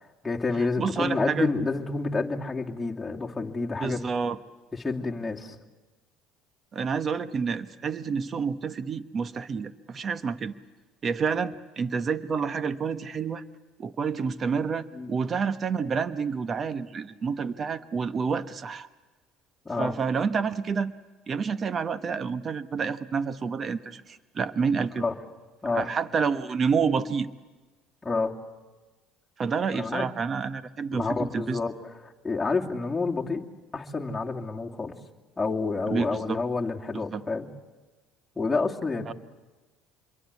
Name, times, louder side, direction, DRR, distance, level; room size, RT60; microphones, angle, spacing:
voice 1, 0.0-4.0 4.7-5.6 14.9-15.1 19.6-19.9 24.9-25.1 25.6-25.9 28.0-28.3 29.7-30.1 30.9-33.4 33.7-34.9 35.4-37.5 38.4-39.1, left 3 dB, 15° left, -2 dB, 2.7 m, -29 dB
voice 2, 0.8-1.5 3.8-4.4 6.7-10.5 11.0-13.4 13.8-18.9 19.8-20.9 21.3-25.0 25.7-27.3 29.4-31.6 35.9-36.4 36.9-37.2 39.1-39.2, right 5 dB, 40° right, 13 dB, 1.2 m, -29 dB
26.5 x 23.0 x 8.4 m, 1.2 s
supercardioid pair, 85°, 0 cm